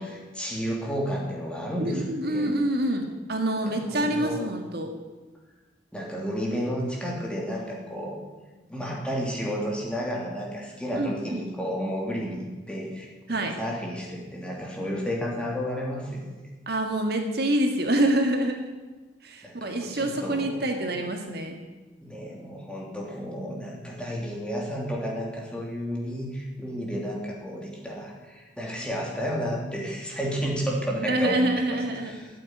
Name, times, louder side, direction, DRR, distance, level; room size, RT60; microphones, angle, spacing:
voice 1, 0.0-2.5 3.6-4.5 5.9-8.2 8.7-13.1 13.4-16.3 19.4-20.9 22.0-31.8 32.0-32.3, equal, 5° left, -2 dB, 3.0 m, -32 dB
voice 2, 1.8-4.9 10.9-11.5 13.3-13.5 16.7-18.7 19.2-21.6 31.1-32.1, right 1 dB, 55° right, 4 dB, 1.8 m, -26 dB
13.5 x 8.8 x 9.7 m, 1.3 s
head